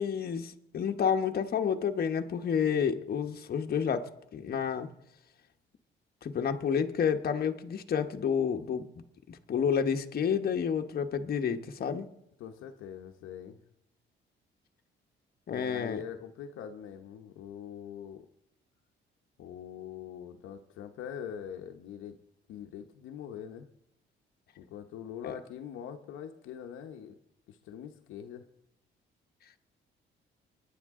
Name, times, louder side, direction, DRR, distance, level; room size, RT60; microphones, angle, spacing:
voice 1, 0.0-4.9 6.2-8.9 9.3-12.1 15.5-16.0 25.2-25.3, left 7 dB, 50° left, 6 dB, 1.2 m, -30 dB
voice 2, 12.4-13.6 15.5-18.3 19.4-22.2 22.5-23.7 24.6-27.2 27.5-28.5, left 9 dB, 90° left, 5 dB, 1.0 m, -43 dB
24.0 x 10.5 x 3.7 m, 0.77 s
cardioid pair, 90°, 20 cm